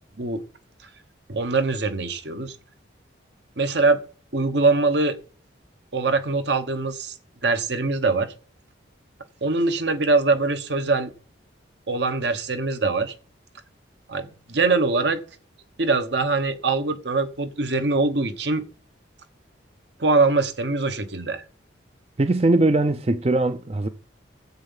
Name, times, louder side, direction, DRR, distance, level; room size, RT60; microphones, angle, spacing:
voice 1, 1.3-2.5 3.6-4.0 4.3-5.2 5.9-7.1 7.4-8.3 9.4-11.1 11.9-13.1 14.1-15.2 15.8-18.6 20.0-21.4, right 3 dB, 65° right, 1.1 m, -23 dB
voice 2, 22.2-23.9, right 2 dB, 30° right, 0.5 m, -20 dB
11.0 x 8.2 x 5.6 m
head